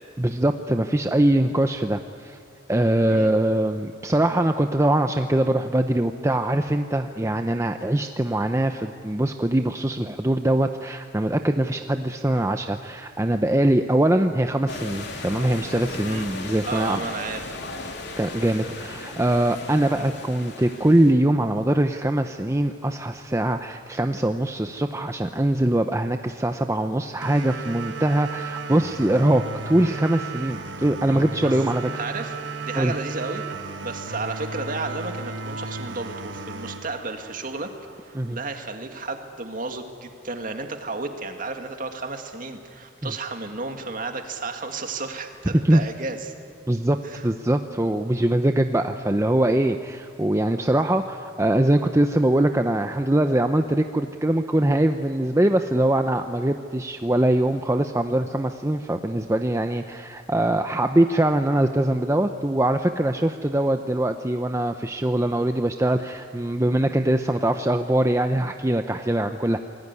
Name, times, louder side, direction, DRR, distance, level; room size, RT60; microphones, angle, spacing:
voice 1, 0.2-2.4 2.7-17.0 18.2-31.9 32.8-32.9 38.1-38.4 43.0-43.1 45.6-45.8 46.7-47.0 47.2-69.6, right 1 dB, 15° right, 7 dB, 0.7 m, -22 dB
sound 1, 14.7-21.1, left 2 dB, 60° left, 3.3 m, -36 dB
voice 2, 16.7-17.6 31.4-32.3 32.6-33.4 33.8-37.7 38.0-46.3 47.0-47.3, right 3 dB, 45° right, 5 dB, 2.2 m, -33 dB
sound 2, 27.2-38.2, right 3 dB, 65° right, 1.4 m, -34 dB
27.5 x 20.0 x 9.8 m, 2.3 s
head